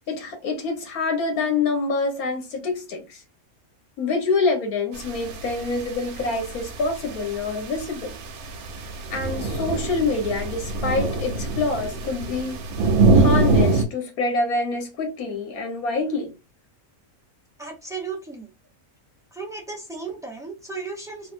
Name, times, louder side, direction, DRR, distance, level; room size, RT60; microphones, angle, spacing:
voice 1, 0.1-3.2 4.0-8.1 9.1-12.6 13.1-16.3, left 3 dB, 80° left, 1.5 m, -26 dB
sound 1, 4.9-13.8, right 3 dB, 85° right, 1.2 m, -24 dB
voice 2, 17.6-18.5 19.3-21.3, right 4 dB, 5° right, 0.5 m, -35 dB
3.3 x 2.5 x 2.5 m
omnidirectional pair, 1.5 m